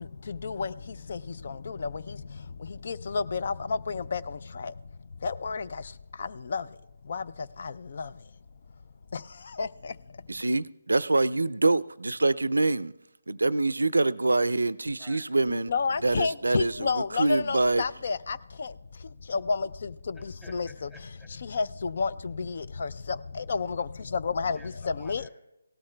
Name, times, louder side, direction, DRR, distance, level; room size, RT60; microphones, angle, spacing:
voice 1, 2.9-3.5 4.1-4.2 5.2-5.6 6.5-6.6 7.1-7.2 15.7-18.2 20.5-20.7 21.6-21.7 22.0-22.1 23.5-23.6 24.4-24.6 25.1-25.2, left 5 dB, 50° left, 0.3 m, -28 dB
voice 2, 10.3-12.9 13.3-15.7 16.0-17.8, right 2 dB, 85° right, 0.4 m, -25 dB
voice 3, 20.4-21.3 24.5-25.3, left 1 dB, 15° left, 2.8 m, -52 dB
18.0 x 13.0 x 2.2 m
figure-of-eight pair, 155°, 0 cm